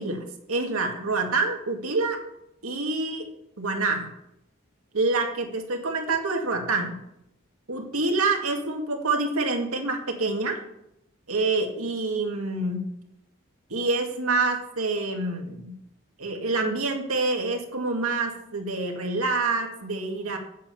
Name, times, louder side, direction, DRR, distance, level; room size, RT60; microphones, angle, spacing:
voice 1, 0.0-2.2 2.6-3.3 3.6-4.1 4.9-7.0 7.7-10.6 11.3-12.8 13.7-15.7 16.2-20.4, right 3 dB, 85° right, 3 dB, 2.2 m, -27 dB
8.9 x 8.9 x 7.2 m, 0.82 s
head